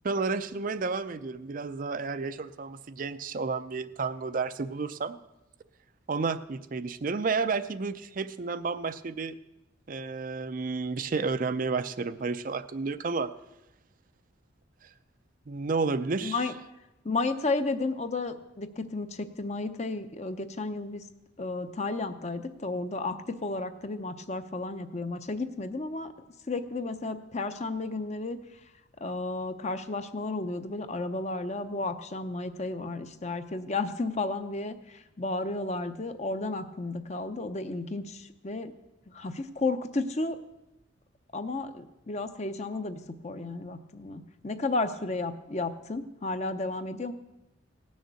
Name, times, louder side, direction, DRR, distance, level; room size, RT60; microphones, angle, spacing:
voice 1, 0.0-5.2 6.1-9.3 9.9-13.3 14.8-14.9 15.5-16.4, right 4 dB, 45° right, 12 dB, 0.4 m, -31 dB
voice 2, 16.2-16.5 17.0-21.0 21.4-26.1 26.5-28.4 29.0-38.7 39.1-40.4 41.3-47.1, left 3 dB, 35° left, 9 dB, 0.7 m, -33 dB
17.5 x 6.5 x 8.2 m, 0.95 s
head